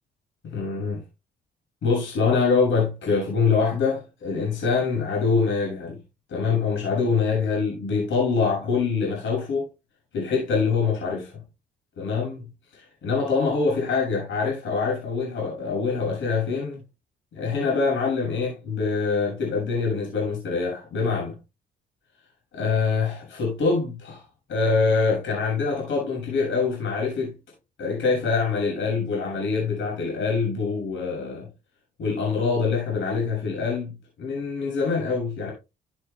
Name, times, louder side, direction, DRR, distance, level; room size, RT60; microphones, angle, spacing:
voice 1, 0.4-1.0 1.8-6.0 6.3-9.7 10.1-11.4 12.0-12.4 12.7-16.8 17.3-21.3 22.5-24.2 24.5-27.3 27.8-31.5 32.0-35.5, left 4 dB, 75° left, 7.5 m, -24 dB
13.5 x 12.0 x 2.3 m
cardioid pair, 90°, 20 cm